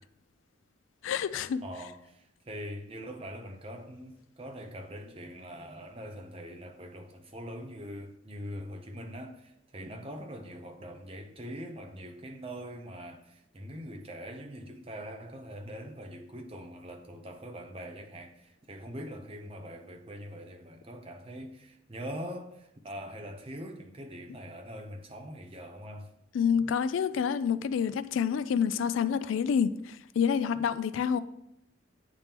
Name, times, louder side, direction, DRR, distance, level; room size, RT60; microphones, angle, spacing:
voice 1, 1.0-1.6 26.3-31.2, left 7 dB, 85° left, 0.3 m, -28 dB
voice 2, 1.6-26.1, equal, 30° right, 0.7 m, -43 dB
9.2 x 3.5 x 2.9 m
head